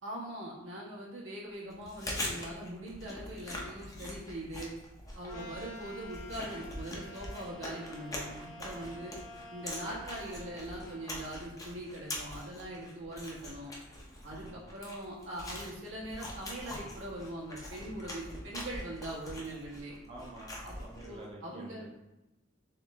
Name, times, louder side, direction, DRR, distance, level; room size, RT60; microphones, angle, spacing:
voice 1, 0.0-4.7 5.1-9.1 9.5-13.7 14.2-19.9 20.6-20.7 21.0-21.8, right 1 dB, 85° right, -5 dB, 1.3 m, -42 dB
Chewing mastication, 1.7-21.2, left 1 dB, 20° left, 0.7 m, -43 dB
sound 1, 5.3-11.1, equal, 85° left, 0.6 m, -49 dB
voice 2, 14.3-14.7 20.1-21.9, right 1 dB, 30° right, -3 dB, 0.6 m, -49 dB
3.6 x 3.2 x 3.5 m, 0.98 s
head